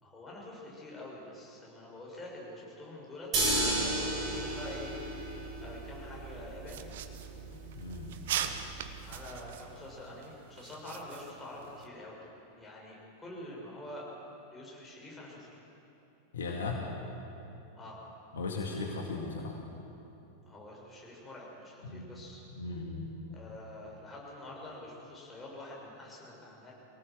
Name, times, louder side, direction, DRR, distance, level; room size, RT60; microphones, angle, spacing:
voice 1, 0.0-5.3 5.6-6.9 9.0-12.2 12.6-14.1 14.5-15.5 17.7-18.0 20.5-22.4 23.3-26.7, left 1 dB, 15° left, -4 dB, 6.7 m, -46 dB
sound 1, 3.3-9.4, right 2 dB, 35° right, 7.4 m, -34 dB
sound 2, 6.7-11.9, right 9 dB, 55° right, 1.2 m, -41 dB
voice 2, 7.5-8.1 16.3-16.8 18.3-19.6 21.8-22.1 22.5-23.1, left 3 dB, 65° left, 0 dB, 2.2 m, -37 dB
24.0 x 18.0 x 7.6 m, 2.9 s
figure-of-eight pair, 90°, 0 cm